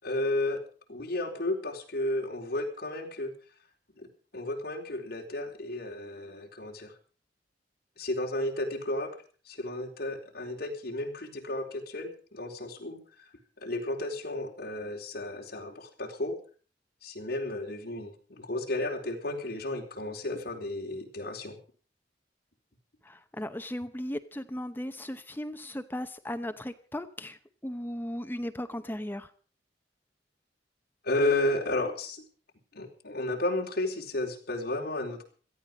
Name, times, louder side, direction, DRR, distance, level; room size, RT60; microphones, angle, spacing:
voice 1, 0.0-0.6 0.9-3.3 4.0-4.1 4.3-6.9 8.0-9.1 9.5-13.3 13.6-16.4 17.0-21.6 31.0-32.2 32.7-35.2, left 1 dB, 60° left, 0 dB, 4.2 m, -33 dB
voice 2, 23.0-29.3, left 1 dB, 10° left, 9 dB, 0.8 m, -37 dB
17.5 x 14.0 x 5.3 m, 0.41 s
head